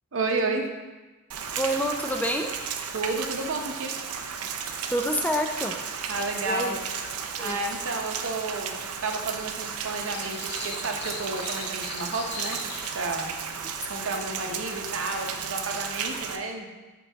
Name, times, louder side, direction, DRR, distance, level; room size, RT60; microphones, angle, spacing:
voice 1, 0.1-0.7 2.9-3.9 6.1-6.8 7.4-12.6 12.9-13.3 13.9-16.7, right 3 dB, 60° right, 3 dB, 0.8 m, -31 dB
Rain, 1.3-16.4, right 6 dB, 90° right, 0.6 m, -34 dB
voice 2, 1.6-2.5 4.9-5.7 6.4-6.8 7.4-7.6, equal, 5° left, 3 dB, 0.4 m, -27 dB
sound 1, 10.1-13.0, left 4 dB, 50° left, 0.7 m, -39 dB
10.0 x 4.0 x 3.4 m, 1.2 s
head